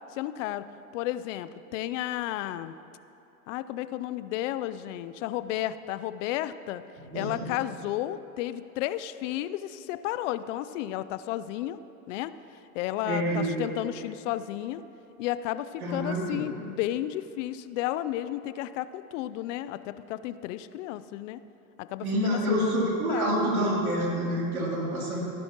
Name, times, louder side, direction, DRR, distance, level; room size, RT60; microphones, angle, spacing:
voice 1, 0.1-0.7 0.9-2.7 3.5-6.8 7.1-11.8 12.1-12.3 12.7-14.8 15.2-21.4 21.8-22.6 23.1-23.4, left 13 dB, 60° left, 14 dB, 0.6 m, -32 dB
voice 2, 7.0-7.5 13.0-13.6 15.8-16.4 22.0-25.2, equal, 90° right, -3 dB, 3.0 m, -27 dB
17.5 x 10.5 x 3.0 m, 3.0 s
hypercardioid pair, 95°, 42 cm